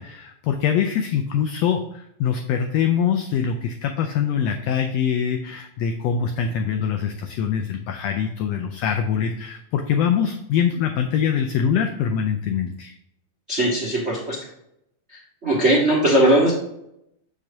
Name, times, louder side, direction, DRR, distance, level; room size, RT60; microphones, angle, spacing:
voice 1, 0.0-12.9, left 8 dB, 90° left, 5 dB, 1.4 m, -23 dB
voice 2, 13.5-14.4 15.1-16.5, right 1 dB, 45° right, -4 dB, 0.8 m, -19 dB
6.7 x 6.1 x 2.7 m, 0.79 s
omnidirectional pair, 3.5 m